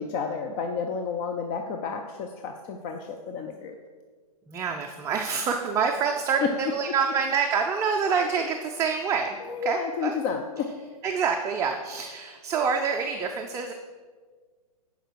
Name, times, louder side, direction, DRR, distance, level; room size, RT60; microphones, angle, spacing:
voice 1, 0.0-3.8 6.4-6.5 9.4-10.7, left 6 dB, 35° left, 4 dB, 0.6 m, -31 dB
voice 2, 4.5-10.1 11.0-13.7, right 6 dB, 15° right, 3 dB, 0.4 m, -27 dB
11.0 x 5.1 x 4.6 m, 1.5 s
hypercardioid pair, 125°, 19 cm